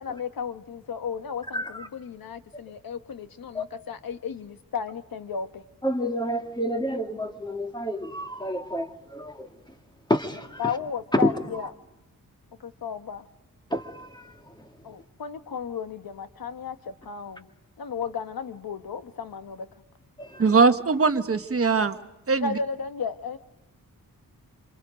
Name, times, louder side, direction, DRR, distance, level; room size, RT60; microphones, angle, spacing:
voice 1, 0.0-5.6 10.6-11.7 12.6-13.2 14.8-17.5 17.8-19.7 22.4-23.4, left 6 dB, 75° left, 10 dB, 1.3 m, -34 dB
voice 2, 1.5-1.9 3.5-3.6 5.8-9.5 10.1-10.6 11.1-11.3 13.7-14.4 20.2-20.6, equal, 10° left, 5 dB, 2.0 m, -29 dB
voice 3, 20.4-22.0 22.3-22.6, right 4 dB, 40° right, 9 dB, 1.3 m, -21 dB
27.5 x 26.5 x 5.1 m, 0.98 s
wide cardioid pair, 130°, 35 cm